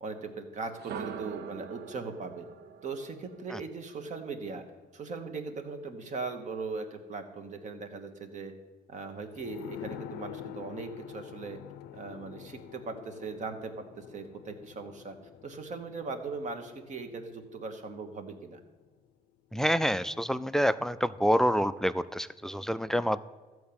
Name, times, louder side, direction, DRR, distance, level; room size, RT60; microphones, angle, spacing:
voice 1, 0.0-2.4 2.8-4.6 4.9-8.5 8.9-11.6 11.9-15.1 15.4-18.6, right 4 dB, 45° right, 6 dB, 1.4 m, -39 dB
sound 1, 0.7-4.7, right 7 dB, 70° right, 0.7 m, -44 dB
sound 2, 9.3-18.6 18.9-19.0, left 11 dB, 85° left, 0.5 m, -47 dB
voice 2, 19.5-23.2, equal, 5° left, 15 dB, 0.3 m, -27 dB
13.5 x 4.7 x 8.7 m, 1.3 s
cardioid pair, 110°, 17 cm